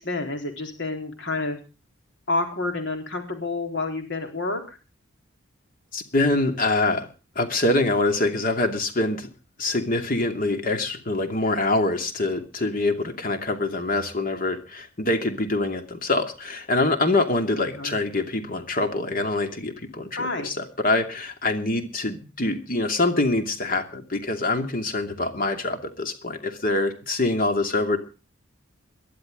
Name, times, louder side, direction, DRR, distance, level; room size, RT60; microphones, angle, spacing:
voice 1, 0.0-1.6 2.3-4.8 17.5-18.0 20.2-20.5, left 2 dB, 60° left, 4 dB, 4.1 m, -29 dB
voice 2, 5.9-7.1 7.3-9.3 9.6-28.0, left 2 dB, 45° left, 6 dB, 2.7 m, -25 dB
21.5 x 12.5 x 3.8 m, 0.34 s
head